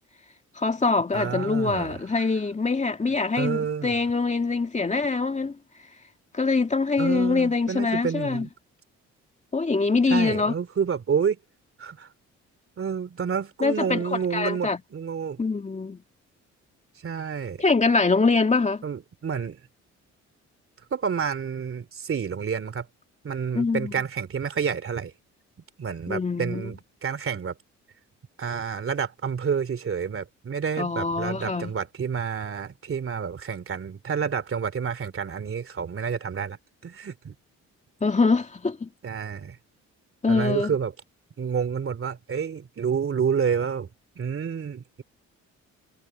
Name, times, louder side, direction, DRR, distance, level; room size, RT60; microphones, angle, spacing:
voice 1, 0.6-5.6 6.3-8.5 9.5-10.5 13.6-14.8 15.4-16.0 17.6-18.8 23.5-23.9 26.1-26.6 30.8-31.7 38.0-38.9 40.2-40.7, left 4 dB, 25° left, 2.4 m, -24 dB
voice 2, 1.1-2.0 3.3-4.0 7.0-8.5 10.1-11.4 11.8-12.1 12.8-15.4 17.0-17.6 18.8-19.6 20.9-22.9 23.2-25.1 25.8-27.5 28.4-36.6 36.8-37.3 39.0-39.6 40.3-40.9 41.4-43.9 44.1-45.0, right 6 dB, 45° right, 3.0 m, -29 dB
cardioid pair, 90°, 30 cm